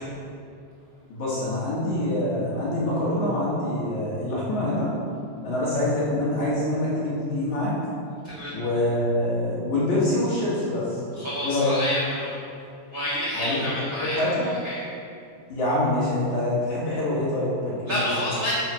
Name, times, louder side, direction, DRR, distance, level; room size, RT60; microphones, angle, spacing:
voice 1, 1.1-4.9 5.4-7.7 8.5-11.0 11.4-11.7 13.3-14.5 15.5-18.0, left 1 dB, 55° left, -8 dB, 2.6 m, -25 dB
voice 2, 11.1-12.4 12.9-14.3 14.6-14.8 17.9-18.5, left 1 dB, 50° right, -9 dB, 1.5 m, -28 dB
9.1 x 5.7 x 6.2 m, 2.5 s
omnidirectional pair, 4.9 m